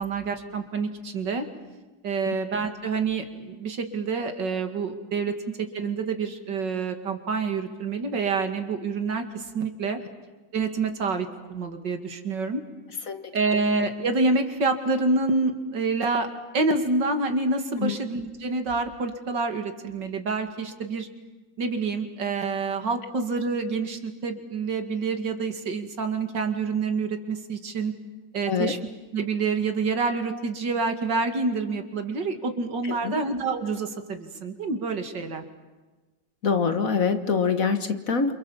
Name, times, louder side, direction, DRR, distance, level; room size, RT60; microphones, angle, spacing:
voice 1, 0.0-1.5 2.0-10.0 10.5-12.6 13.3-16.3 16.5-21.1 21.6-27.9 28.3-28.8 29.1-35.4, right 4 dB, 70° right, 6 dB, 2.9 m, -27 dB
voice 2, 32.8-33.2 36.4-38.3, left 5 dB, 50° left, 8 dB, 1.8 m, -25 dB
28.5 x 28.0 x 7.3 m, 1.2 s
omnidirectional pair, 2.0 m